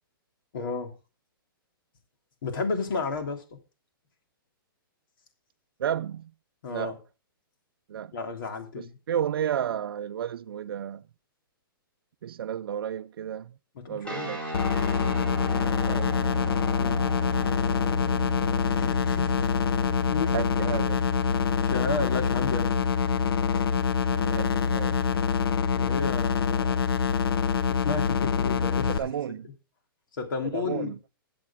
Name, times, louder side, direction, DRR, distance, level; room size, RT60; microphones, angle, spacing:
voice 1, 0.5-0.9 2.4-3.4 6.6-6.9 8.1-9.0 13.9-14.5 16.8-17.0 18.6-19.5 20.1-20.4 21.6-22.7 23.5-23.7 25.7-26.9 27.7-29.1 30.1-30.9, left 4 dB, 65° left, 3.0 m, -33 dB
voice 2, 5.8-6.3 6.7-6.9 7.9-8.1 8.8-11.0 12.2-13.5 13.9-14.4 15.8-16.4 20.3-21.0 24.1-25.0 28.9-29.5 30.4-31.0, right 9 dB, 80° right, 0.4 m, -32 dB
sound 1, 14.0-25.2, right 1 dB, 10° left, 2.6 m, -37 dB
sound 2, 14.5-29.0, left 6 dB, 85° left, 0.9 m, -25 dB
15.0 x 7.7 x 3.6 m
hypercardioid pair, 155°, 12 cm